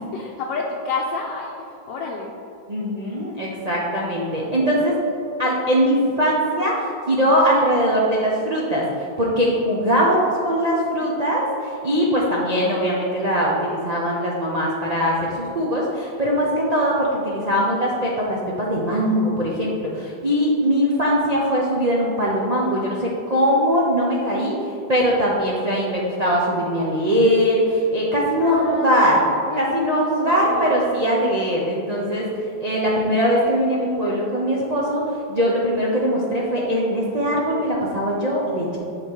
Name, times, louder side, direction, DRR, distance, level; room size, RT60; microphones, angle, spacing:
voice 1, 0.1-2.3 28.4-30.8, left 4 dB, 75° left, -2 dB, 1.4 m, -30 dB
voice 2, 2.7-5.0 5.4-35.0 35.3-38.8, equal, 70° right, -5 dB, 0.3 m, -21 dB
7.7 x 4.3 x 4.7 m, 2.7 s
omnidirectional pair, 2.0 m